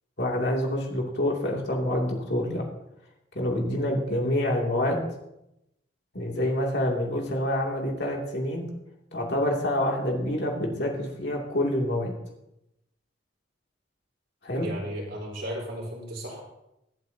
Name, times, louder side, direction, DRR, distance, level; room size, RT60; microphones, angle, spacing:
voice 1, 0.2-2.6 3.3-5.0 6.1-8.7 9.1-12.1 14.4-14.7, left 1 dB, 60° left, -1 dB, 2.7 m, -27 dB
voice 2, 14.6-16.4, equal, 90° right, -3 dB, 4.3 m, -35 dB
23.5 x 8.4 x 2.8 m, 0.86 s
head